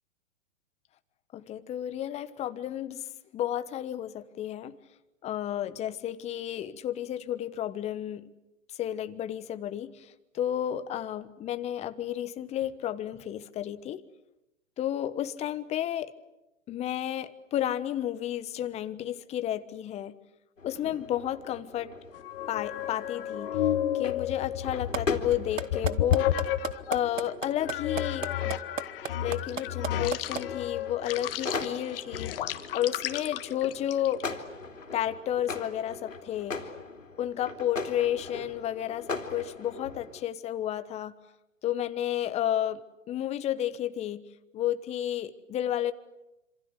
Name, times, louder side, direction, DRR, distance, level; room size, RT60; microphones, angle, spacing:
voice 1, 1.3-3.0 3.3-4.8 5.2-8.2 8.8-10.1 10.3-14.0 14.8-16.1 16.7-20.1 20.6-21.9 22.5-23.5 23.9-26.4 26.9-28.6 29.2-32.3 32.7-34.3 34.9-36.6 37.2-41.1 41.6-42.8 43.1-44.2 44.5-45.9, left 11 dB, 15° left, 12 dB, 1.1 m, -32 dB
sound 1, 20.6-40.2, left 4 dB, 80° left, 3.4 m, -40 dB
sound 2, 22.1-27.1 27.7-34.3, left 11 dB, 45° left, 1.6 m, -32 dB
sound 3, 24.9-25.0 25.3-30.4, right 6 dB, 80° right, 1.3 m, -32 dB
27.5 x 26.5 x 8.0 m, 0.93 s
figure-of-eight pair, 115°, 38 cm